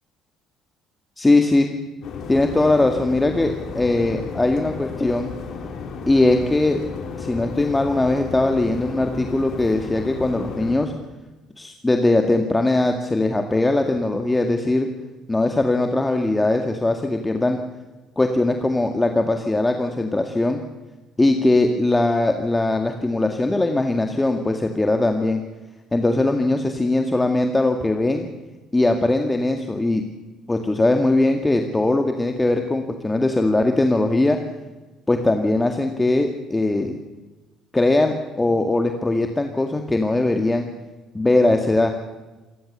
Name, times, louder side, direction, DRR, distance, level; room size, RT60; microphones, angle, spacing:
voice 1, 1.2-1.7 2.3-5.3 6.1-6.8 7.2-10.9 11.6-14.9 15.3-17.6 18.2-20.6 21.2-25.4 25.9-28.3 28.7-30.0 30.5-34.4 35.1-37.0 37.7-40.7 41.1-41.9, left 2 dB, 15° left, 4 dB, 2.0 m, -20 dB
sound 1, 2.0-10.8, left 5 dB, 55° left, 3.7 m, -33 dB
26.5 x 14.5 x 7.0 m, 1.2 s
hypercardioid pair, 55°, 0 cm